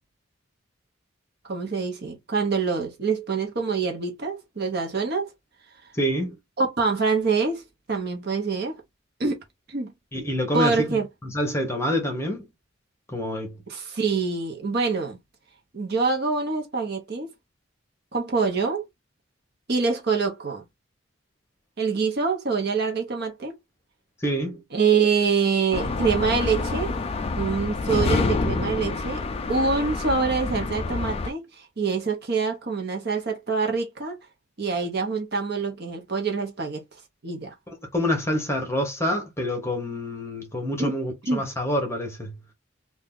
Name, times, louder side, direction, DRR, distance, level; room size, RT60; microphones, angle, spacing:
voice 1, 1.5-5.3 6.6-7.6 7.9-8.8 9.2-9.4 9.7-9.9 10.5-11.1 13.7-15.2 15.7-17.3 18.1-18.8 19.7-20.6 21.8-23.6 24.7-27.0 27.4-29.2 29.5-31.4 31.8-34.2 34.6-36.8 37.2-37.5 40.8-40.9 41.3-41.4, right 4 dB, 50° right, 0.9 m, -25 dB
voice 2, 5.9-6.3 10.1-12.5 13.1-13.6 24.2-24.6 37.7-42.3, equal, 15° left, 1.0 m, -27 dB
sound 1, 25.7-31.3, left 3 dB, 30° left, 0.3 m, -27 dB
2.7 x 2.4 x 3.6 m
head